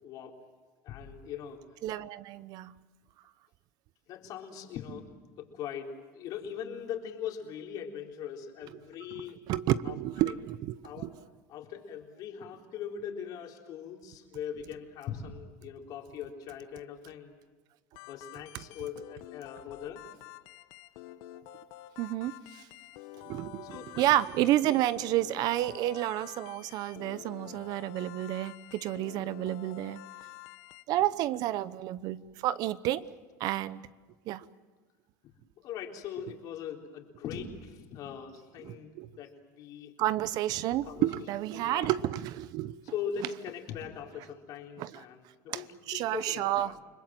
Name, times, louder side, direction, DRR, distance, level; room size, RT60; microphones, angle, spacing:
voice 1, 0.0-0.4 0.8-1.6 4.1-9.4 9.8-10.0 10.3-10.4 10.8-11.1 11.5-17.4 18.1-20.1 23.6-24.0 28.0-28.2 35.6-39.9 40.9-41.1 41.5-41.9 42.9-46.8, left 8 dB, 50° left, 2 dB, 3.9 m, -41 dB
voice 2, 1.8-2.7 9.5-11.1 22.0-22.7 23.2-30.0 30.9-33.0 33.4-33.9 34.3-34.5 38.6-39.1 40.0-42.8 44.8-45.0 45.5-46.8, right 14 dB, 55° right, 16 dB, 0.9 m, -30 dB
sound 1, 17.9-30.8, left 14 dB, 70° left, 1.0 m, -49 dB
30.0 x 20.5 x 7.7 m, 1.3 s
supercardioid pair, 125°, 8 cm